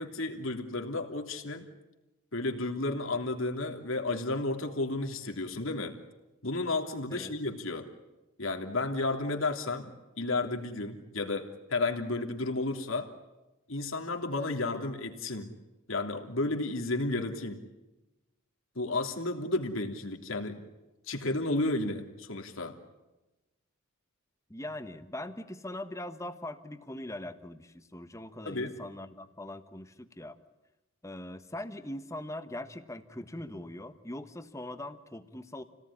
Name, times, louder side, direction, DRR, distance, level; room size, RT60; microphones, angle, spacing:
voice 1, 0.0-1.6 2.3-6.0 6.4-7.9 8.4-9.9 10.2-13.1 13.7-15.5 15.9-17.6 18.7-20.6 21.1-22.8 28.4-28.7, left 2 dB, 70° left, 4 dB, 3.2 m, -32 dB
voice 2, 24.5-30.4 31.0-35.6, left 1 dB, 15° left, 9 dB, 1.3 m, -41 dB
29.5 x 18.0 x 10.0 m, 1.0 s
head